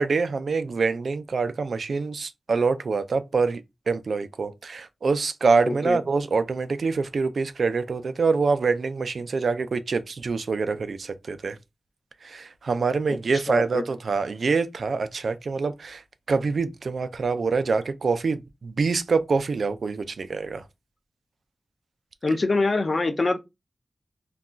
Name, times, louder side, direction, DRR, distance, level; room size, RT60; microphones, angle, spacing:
voice 1, 0.0-11.6 12.2-16.0 16.3-20.6, right 4 dB, 75° right, 0.3 m, -25 dB
voice 2, 5.7-6.0 13.1-13.2 13.5-13.8 22.2-23.4, left 3 dB, 45° left, 0.5 m, -24 dB
2.2 x 2.2 x 3.7 m
wide cardioid pair, 115°, 0 cm